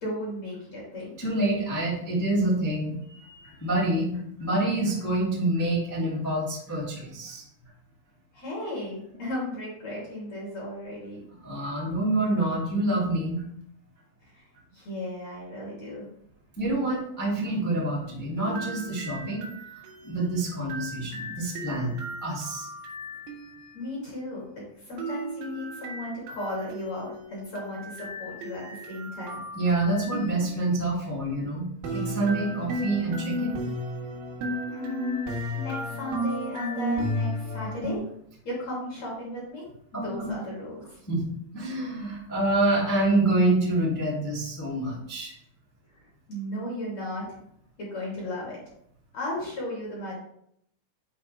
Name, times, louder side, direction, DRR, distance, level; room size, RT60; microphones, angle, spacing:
voice 1, 0.0-1.2 8.3-11.2 14.3-14.4 14.7-16.0 23.7-29.4 34.7-35.2 35.5-38.0 38.4-39.6 39.9-41.0 46.3-47.4 47.8-48.6 49.1-50.1, left 1 dB, 40° left, -5 dB, 3.3 m, -35 dB
voice 2, 1.2-7.4 11.4-13.4 16.6-19.5 20.0-21.9 22.2-22.7 29.5-31.6 31.9-33.6 39.9-40.3 41.1-41.2 41.5-45.3, right 2 dB, 15° left, -7 dB, 0.7 m, -27 dB
sound 1, 18.4-23.7 25.0-30.8 31.8-38.0, equal, 75° right, 3.7 m, -34 dB
9.4 x 5.2 x 3.3 m, 0.70 s
omnidirectional pair, 5.6 m